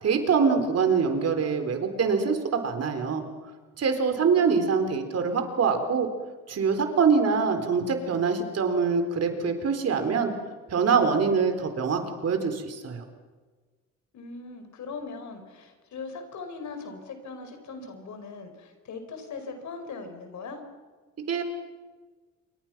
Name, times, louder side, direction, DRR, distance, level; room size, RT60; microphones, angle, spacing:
voice 1, 0.0-3.3 3.8-6.1 6.5-10.3 10.7-13.0 21.3-21.4, right 5 dB, 55° right, 6 dB, 4.0 m, -24 dB
voice 2, 4.1-4.7 14.1-20.6, left 4 dB, 70° left, 7 dB, 5.3 m, -40 dB
27.5 x 24.5 x 6.1 m, 1.4 s
cardioid pair, 90°, 30 cm